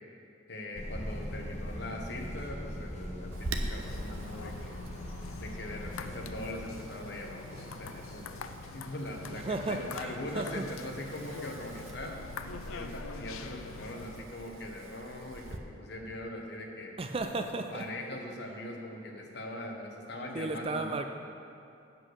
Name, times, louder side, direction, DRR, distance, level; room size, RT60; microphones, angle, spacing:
voice 1, 0.5-4.8 5.4-12.2 12.7-16.9 17.5-21.0, left 1 dB, 55° left, 1 dB, 1.2 m, -41 dB
sound 1, 0.7-6.7, equal, 35° left, 0.9 m, -41 dB
Wind, 3.3-15.6, right 2 dB, 80° right, 0.7 m, -45 dB
sound 2, 3.8-14.2, left 5 dB, 90° left, 0.4 m, -45 dB
voice 2, 9.3-10.7 17.0-18.2 20.3-21.1, right 3 dB, 30° right, 6 dB, 0.4 m, -35 dB
8.1 x 7.6 x 6.3 m, 2.6 s
head